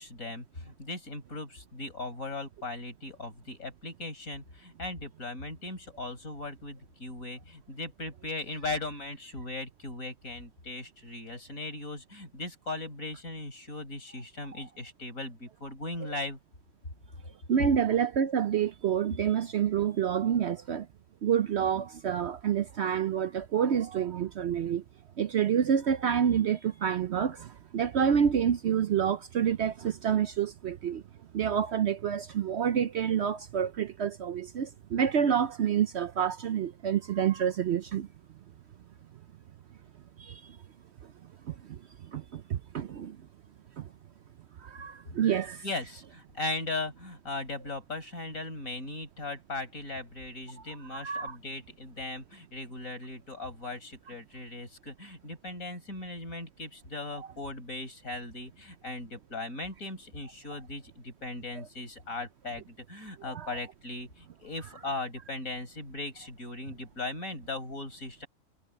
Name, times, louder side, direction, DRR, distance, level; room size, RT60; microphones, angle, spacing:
voice 1, 0.0-16.4 45.6-68.3, left 2 dB, 70° left, 5.9 m, -38 dB
voice 2, 17.5-20.9 21.2-24.8 25.2-31.0 31.3-38.1 40.2-40.6 41.5-41.8 42.1-43.2 43.8-43.9 44.6-45.6 50.9-51.4 61.6-61.7 63.3-63.5, right 8 dB, 60° right, 0.8 m, -28 dB
omnidirectional pair, 1.5 m